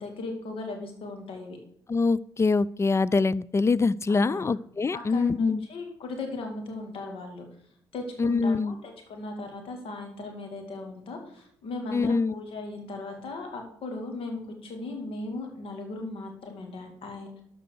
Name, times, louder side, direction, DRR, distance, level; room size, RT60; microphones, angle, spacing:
voice 1, 0.0-1.6 4.1-4.5 4.9-7.4 7.9-17.4, left 2 dB, 55° left, 4 dB, 2.5 m, -37 dB
voice 2, 1.9-5.7 8.2-8.7 11.9-12.3, left 4 dB, 25° left, 20 dB, 0.4 m, -24 dB
12.5 x 4.7 x 6.7 m, 0.68 s
figure-of-eight pair, 45°, 11 cm